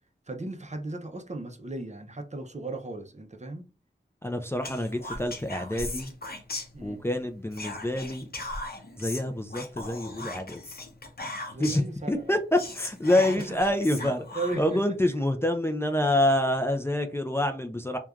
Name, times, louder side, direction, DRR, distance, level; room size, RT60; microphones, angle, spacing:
voice 1, 0.3-3.7 6.7-7.0 11.5-12.4 13.3-13.6 14.0-15.1, right 2 dB, 35° right, 0.6 m, -36 dB
voice 2, 4.2-6.1 6.8-8.3 9.0-10.6 11.6-11.8 12.1-14.2 14.6-18.0, left 1 dB, 15° left, 0.4 m, -27 dB
Whispering, 4.6-7.1 7.5-11.9 12.3-12.4 12.6-14.8, left 2 dB, 50° left, 0.7 m, -38 dB
3.1 x 2.2 x 2.4 m
wide cardioid pair, 40°, 19 cm